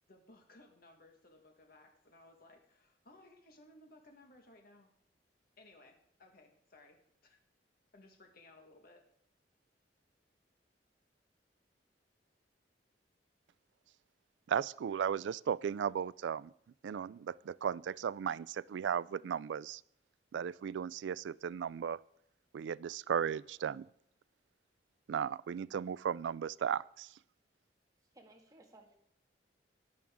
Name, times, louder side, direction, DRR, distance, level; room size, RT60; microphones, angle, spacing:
voice 1, 0.1-4.9 5.6-5.9 6.2-7.4 7.9-9.0, left 2 dB, 55° left, 3 dB, 1.6 m, -60 dB
voice 2, 14.5-16.5 16.8-19.8 20.3-22.0 22.5-23.9 25.1-27.1, right 8 dB, 90° right, 21 dB, 0.3 m, -36 dB
voice 3, 28.1-29.0, right 2 dB, 20° right, 1 dB, 1.9 m, -59 dB
14.5 x 10.5 x 3.6 m, 0.73 s
head